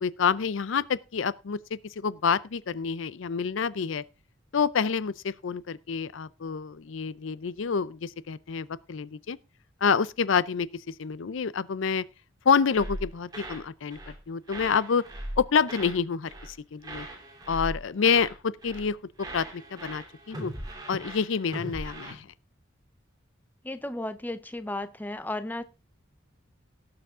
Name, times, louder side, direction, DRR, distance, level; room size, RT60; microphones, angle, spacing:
voice 1, 0.0-4.0 4.5-9.4 9.8-12.0 12.5-14.0 14.3-15.0 15.4-17.1 17.5-20.5 20.9-22.3, left 6 dB, 70° left, 0.5 m, -28 dB
sound 1, 12.7-13.7 13.9-14.2 14.5-16.0 16.3-16.6 16.8-18.4 18.6-18.9 19.2-22.1, right 1 dB, 20° right, 2.9 m, -39 dB
voice 2, 23.6-25.6, left 1 dB, 10° left, 0.6 m, -34 dB
17.5 x 6.9 x 3.7 m
head